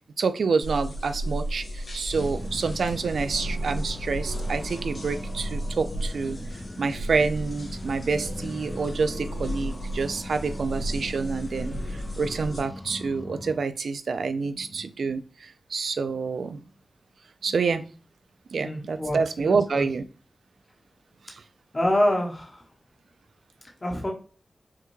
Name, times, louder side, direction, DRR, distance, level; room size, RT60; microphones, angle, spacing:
voice 1, 0.2-6.4 6.8-16.6 17.4-17.8 18.5-20.0 21.3-21.4, right 4 dB, 85° right, 11 dB, 0.3 m, -28 dB
sound 1, 0.6-12.6, equal, 70° left, 1.3 m, -34 dB
sound 2, 2.1-13.6, left 1 dB, 15° left, 0.4 m, -40 dB
voice 2, 18.6-19.8 21.7-22.6 23.8-24.1, left 1 dB, 35° left, 0 dB, 1.0 m, -26 dB
5.5 x 2.2 x 3.1 m, 0.38 s
cardioid pair, 60°, 0 cm